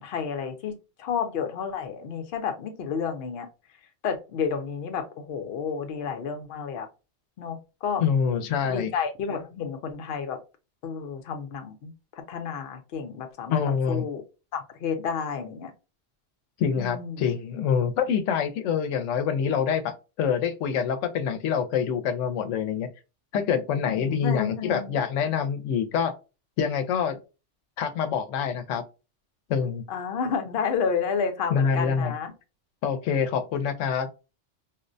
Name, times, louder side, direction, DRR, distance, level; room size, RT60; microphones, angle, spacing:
voice 1, 0.0-3.5 4.0-6.9 7.4-8.0 8.6-10.4 10.8-11.9 12.3-13.6 13.9-14.2 14.5-15.7 16.8-17.3 23.9-25.0 29.9-32.3, left 6 dB, 60° left, 5 dB, 0.8 m, -31 dB
voice 2, 8.0-8.9 13.5-14.0 16.6-22.9 23.3-26.1 26.6-27.2 27.8-28.8 29.5-29.8 31.5-32.1 32.8-34.1, left 7 dB, 90° left, 8 dB, 0.9 m, -26 dB
4.2 x 2.1 x 2.5 m, 0.29 s
omnidirectional pair, 1.2 m